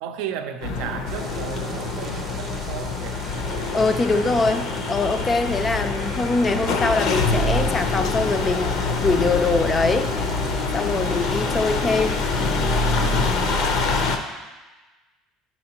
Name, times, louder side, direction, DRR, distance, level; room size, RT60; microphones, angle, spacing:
voice 1, 0.0-3.8 4.2-4.9 14.0-14.1, right 8 dB, 75° right, 8 dB, 0.5 m, -35 dB
sound 1, 0.6-14.2, left 3 dB, 60° left, 0.7 m, -25 dB
sound 2, 1.1-14.2, right 4 dB, 30° right, 0.7 m, -43 dB
voice 2, 3.7-10.1 10.7-12.2, left 3 dB, 20° left, 8 dB, 0.4 m, -23 dB
9.4 x 4.3 x 2.9 m, 1.2 s
cardioid pair, 140°, 0 cm